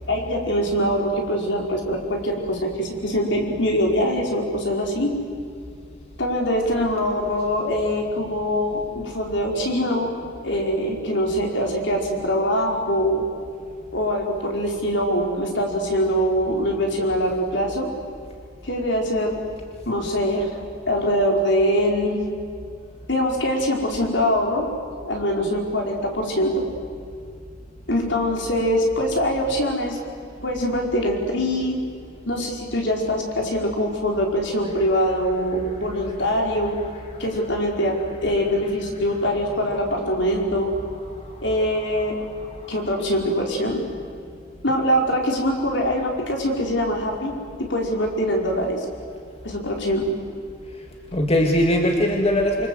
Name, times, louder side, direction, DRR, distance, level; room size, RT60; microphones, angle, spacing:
voice 1, 0.1-5.1 6.2-10.1 10.4-13.2 13.9-17.9 18.6-19.4 19.8-20.5 20.9-22.3 23.1-24.7 25.0-26.6 27.9-30.0 30.4-31.8 32.3-36.8 37.2-38.0 38.2-40.7 41.4-42.2 42.7-43.8 44.6-47.3 47.6-48.8 49.4-50.1, equal, 65° left, 1 dB, 5.1 m, -23 dB
voice 2, 43.0-43.5 51.1-52.7, left 1 dB, 30° left, 2 dB, 2.2 m, -21 dB
27.5 x 26.0 x 8.1 m, 2.3 s
head